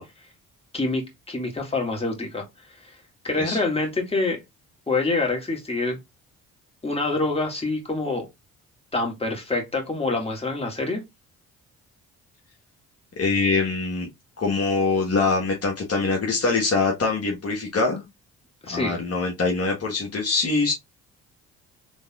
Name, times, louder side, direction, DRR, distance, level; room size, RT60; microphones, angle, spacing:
voice 1, 0.7-2.5 3.2-4.4 4.9-6.0 6.8-8.3 8.9-11.0 18.6-19.0, left 3 dB, 15° left, 2.0 m, -26 dB
voice 2, 13.2-14.1 14.4-18.1 18.7-20.7, left 3 dB, 40° left, 1.4 m, -23 dB
3.9 x 3.5 x 2.4 m
hypercardioid pair, 50°, 38 cm